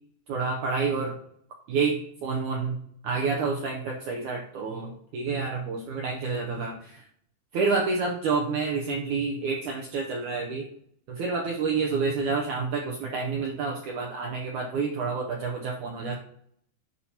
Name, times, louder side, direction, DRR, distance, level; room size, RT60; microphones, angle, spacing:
voice 1, 0.3-1.2 1.7-2.8 3.0-7.0 7.5-10.7 11.1-16.2, right 4 dB, 75° right, 0 dB, 1.8 m, -28 dB
11.0 x 5.6 x 3.0 m, 0.67 s
omnidirectional pair, 4.5 m